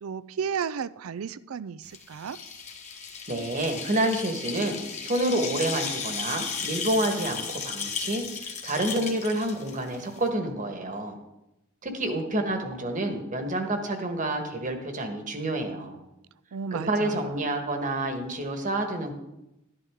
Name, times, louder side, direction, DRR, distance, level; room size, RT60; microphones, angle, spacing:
voice 1, 0.0-2.4 16.5-17.3, right 6 dB, 80° right, 17 dB, 0.4 m, -33 dB
sound 1, 1.9-10.3, left 5 dB, 35° left, 1.4 m, -35 dB
voice 2, 3.3-4.8 5.0-11.2 11.8-16.0 16.7-19.1, right 1 dB, 40° right, 5 dB, 1.4 m, -28 dB
12.0 x 11.0 x 3.6 m, 0.91 s
head